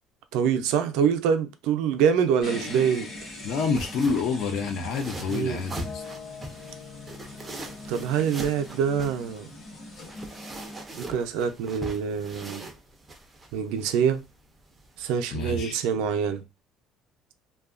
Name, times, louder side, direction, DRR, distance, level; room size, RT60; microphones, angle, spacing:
voice 1, 0.3-3.1 5.3-5.6 7.9-9.5 10.9-12.7 13.5-14.2 15.0-16.4, right 7 dB, 80° right, 0.4 m, -25 dB
sound 1, 2.4-10.8, left 2 dB, 35° left, 0.9 m, -42 dB
sound 2, 2.6-15.2, right 2 dB, 15° right, 0.4 m, -42 dB
voice 2, 3.4-6.0 15.3-15.8, left 4 dB, 50° left, 0.4 m, -28 dB
sound 3, 5.8-9.8, left 6 dB, 65° left, 0.9 m, -47 dB
2.7 x 2.2 x 2.4 m
cardioid pair, 175°, 0 cm